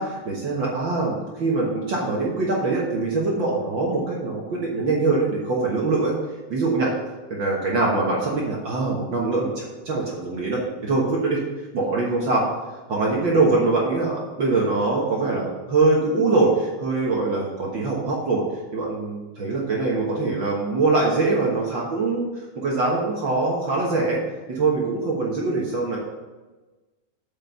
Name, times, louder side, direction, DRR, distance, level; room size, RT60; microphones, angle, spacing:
voice 1, 0.0-6.2 6.5-6.9 7.3-11.4 11.7-12.4 12.9-18.4 18.7-24.2 24.5-26.0, right 3 dB, 50° right, -4 dB, 1.5 m, -23 dB
8.3 x 5.3 x 6.7 m, 1.2 s
omnidirectional pair, 3.7 m